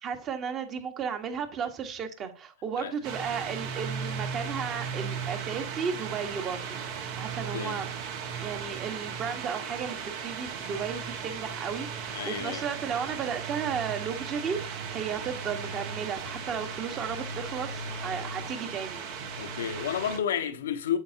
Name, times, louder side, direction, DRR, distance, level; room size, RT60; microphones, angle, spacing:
voice 1, 0.0-8.0 8.4-19.1, right 6 dB, 35° right, 1.6 m, -34 dB
sound 1, 3.0-20.2, right 6 dB, 65° right, 1.8 m, -36 dB
voice 2, 12.1-12.7 19.4-21.0, left 9 dB, 80° left, 1.0 m, -31 dB
9.1 x 7.3 x 3.0 m
hypercardioid pair, 100°, 0 cm